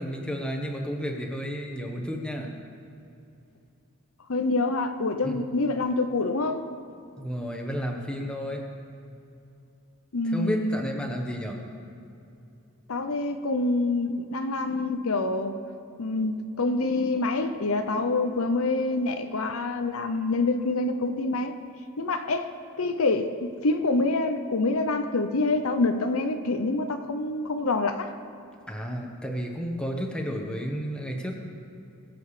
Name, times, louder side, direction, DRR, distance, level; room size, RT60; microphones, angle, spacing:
voice 1, 0.0-2.5 5.2-5.4 7.2-8.7 10.2-11.6 28.7-31.3, equal, 5° left, 1 dB, 1.4 m, -32 dB
voice 2, 4.3-6.6 10.1-10.8 12.9-15.5 16.0-21.5 22.0-22.5 22.8-28.1, left 2 dB, 70° left, 7 dB, 0.8 m, -26 dB
22.5 x 7.8 x 5.0 m, 2.7 s
head